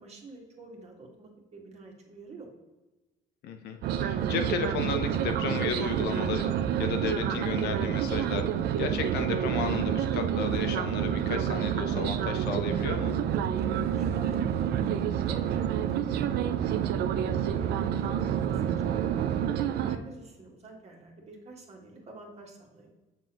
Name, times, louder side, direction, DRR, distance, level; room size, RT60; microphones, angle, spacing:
voice 1, 0.0-2.5 13.9-14.9 15.2-19.0 19.4-22.9, right 3 dB, 40° right, 0 dB, 1.7 m, -47 dB
voice 2, 3.4-13.1, left 6 dB, 75° left, 6 dB, 0.8 m, -34 dB
sound 1, 3.8-20.0, right 9 dB, 70° right, 0.5 m, -28 dB
7.1 x 6.0 x 3.0 m, 1.1 s
cardioid pair, 110°, 17 cm